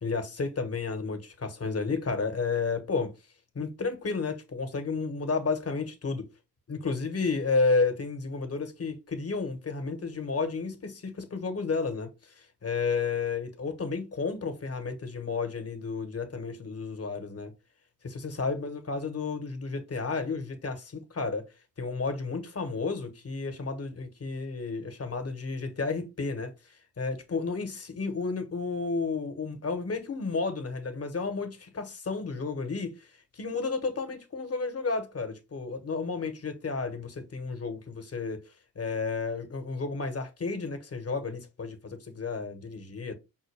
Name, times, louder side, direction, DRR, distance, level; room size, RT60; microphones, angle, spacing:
voice 1, 0.0-3.1 3.5-6.3 6.7-17.5 18.0-21.5 21.8-33.1 33.3-38.4 38.7-43.2, left 4 dB, 40° left, 1.3 m, -32 dB
5.5 x 2.2 x 3.3 m
supercardioid pair, 50°, 36 cm